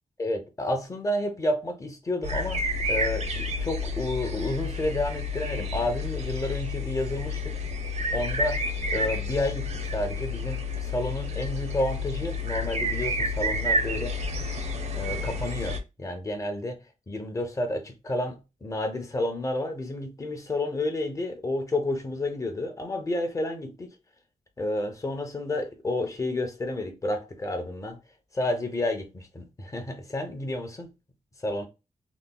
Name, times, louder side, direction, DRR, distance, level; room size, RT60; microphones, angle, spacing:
voice 1, 0.2-2.6 2.9-7.6 8.1-14.1 14.9-23.9 24.6-28.0 28.3-30.9 31.4-31.7, left 1 dB, 20° left, 0.6 m, -30 dB
sound 1, 2.2-15.8, left 2 dB, 50° right, 0.5 m, -30 dB
3.9 x 2.0 x 2.2 m
wide cardioid pair, 135°, 15 cm